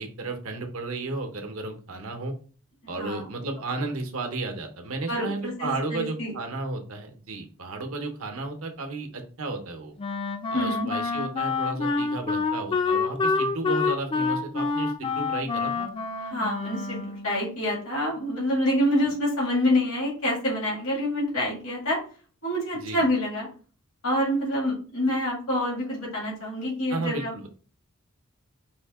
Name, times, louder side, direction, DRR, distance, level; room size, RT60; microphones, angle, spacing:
voice 1, 0.0-2.3 2.9-9.9 10.5-15.9 19.0-19.1 22.7-23.0 26.9-27.5, right 3 dB, 75° right, 4 dB, 0.9 m, -33 dB
voice 2, 3.0-3.3 5.1-6.3 10.5-10.9 16.3-22.0 22.4-23.5 24.0-27.5, left 1 dB, 80° left, -3 dB, 2.0 m, -27 dB
Wind instrument woodwind instrument, 10.0-17.4, left 4 dB, 25° left, 0.4 m, -27 dB
5.2 x 2.8 x 3.6 m, 0.40 s
head